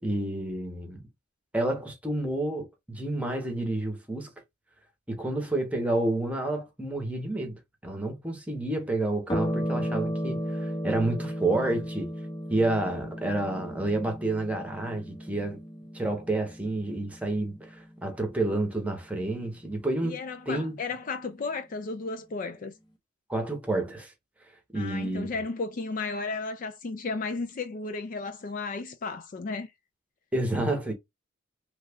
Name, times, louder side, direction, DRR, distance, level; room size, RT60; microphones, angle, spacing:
voice 1, 0.0-1.0 1.5-4.3 5.1-12.1 12.5-15.6 15.9-20.2 20.5-20.7 23.3-24.1 24.7-25.3 30.3-30.9, right 2 dB, 5° right, 0.9 m, -29 dB
sound 1, 9.3-18.1, equal, 20° left, 0.7 m, -34 dB
voice 2, 20.0-22.7 24.7-29.7, left 3 dB, 40° left, 0.4 m, -34 dB
3.2 x 2.3 x 3.4 m
head